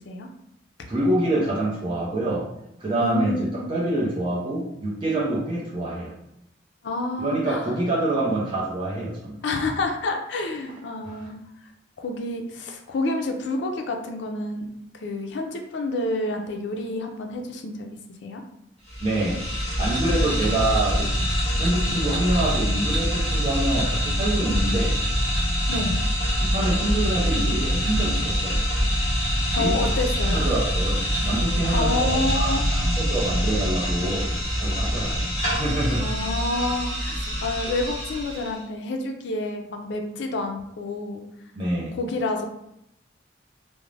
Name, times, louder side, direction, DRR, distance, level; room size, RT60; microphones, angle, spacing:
voice 1, 0.9-2.5 2.8-6.1 7.2-9.4 11.1-11.2 19.0-19.4 19.8-21.1 21.5-25.0 26.3-28.6 29.6-29.8 30.3-36.0 41.5-42.0, right 1 dB, 25° right, -7 dB, 0.5 m, -26 dB
voice 2, 3.0-3.7 6.8-7.7 9.4-11.4 12.0-14.7 14.9-18.4 20.2-20.7 25.7-26.0 29.5-30.4 31.7-32.6 36.0-41.2 41.9-42.5, left 2 dB, 65° left, 3 dB, 0.4 m, -29 dB
sound 1, 18.9-38.6, equal, 30° left, 1.1 m, -25 dB
2.4 x 2.0 x 3.1 m, 0.79 s
head